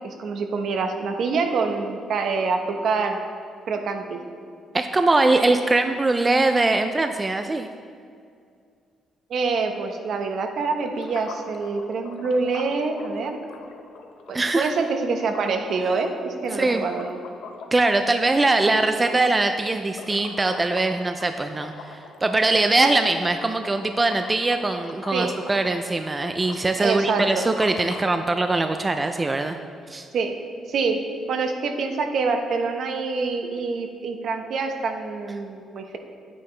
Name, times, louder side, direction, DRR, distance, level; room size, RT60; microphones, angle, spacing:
voice 1, 0.0-3.2 3.7-4.2 9.3-13.4 14.3-17.2 19.0-19.2 25.1-25.4 26.8-27.2 30.1-30.4 30.7-31.0 31.3-36.0, right 4 dB, 65° right, 5 dB, 1.0 m, -26 dB
voice 2, 4.7-7.7 14.3-14.7 16.5-16.8 17.7-29.6 29.9-30.1, right 2 dB, 20° right, 7 dB, 0.4 m, -22 dB
sound 1, 10.8-28.2, left 5 dB, 75° left, 0.8 m, -42 dB
9.3 x 9.1 x 3.3 m, 2.3 s
cardioid pair, 90°, 0 cm